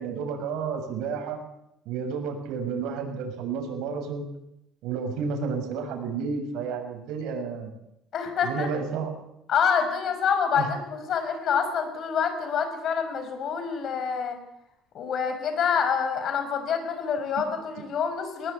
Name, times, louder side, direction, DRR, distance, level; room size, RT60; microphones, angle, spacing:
voice 1, 0.0-1.4 1.9-4.3 4.8-7.7 8.4-9.1 10.6-10.7, right 5 dB, 75° right, 3 dB, 6.9 m, -31 dB
voice 2, 8.1-8.7 9.5-14.4 14.9-18.5, left 6 dB, 50° left, 7 dB, 6.0 m, -27 dB
21.0 x 20.5 x 8.6 m, 0.83 s
cardioid pair, 130°, 0 cm